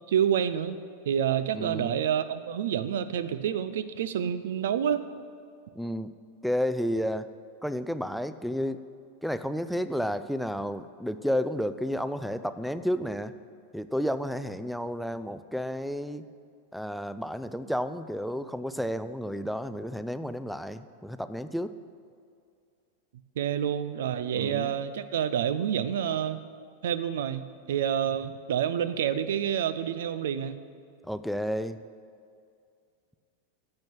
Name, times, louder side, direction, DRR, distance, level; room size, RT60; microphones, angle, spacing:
voice 1, 0.1-0.8 1.1-5.0 23.4-26.4 26.8-30.6, right 9 dB, 60° right, 13 dB, 0.6 m, -28 dB
voice 2, 1.5-2.0 5.8-6.1 6.4-7.3 7.6-8.8 9.2-13.3 13.7-16.2 16.7-21.7 24.4-24.7 31.0-31.8, equal, ahead, 12 dB, 0.5 m, -31 dB
10.5 x 7.6 x 8.4 m, 2.4 s
figure-of-eight pair, 90°, 0 cm